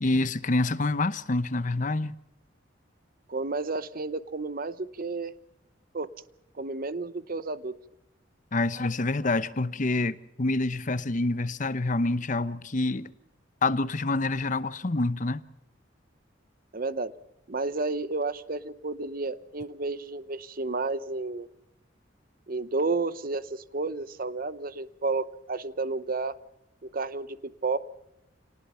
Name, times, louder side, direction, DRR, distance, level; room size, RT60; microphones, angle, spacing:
voice 1, 0.0-2.1 8.5-13.1 13.6-15.4, left 2 dB, 40° left, 0.9 m, -27 dB
voice 2, 3.3-5.3 5.9-6.1 6.6-7.7 16.7-17.1 17.5-21.5 22.5-26.4 26.9-27.4 27.6-27.8, right 3 dB, 50° right, 0.8 m, -31 dB
27.5 x 19.0 x 5.6 m
head